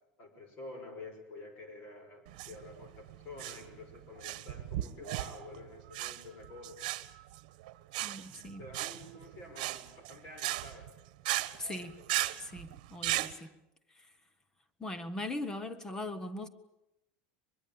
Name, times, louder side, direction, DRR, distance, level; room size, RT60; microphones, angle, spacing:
voice 1, 0.2-6.8 8.6-10.9, left 2 dB, 35° left, 5.4 m, -49 dB
sound 1, 2.3-13.3, right 17 dB, 65° right, 1.2 m, -37 dB
voice 2, 8.0-8.6 11.6-12.0 12.4-13.5 14.8-16.5, left 2 dB, 10° left, 1.1 m, -40 dB
23.0 x 22.5 x 8.8 m
cardioid pair, 180°, 5 cm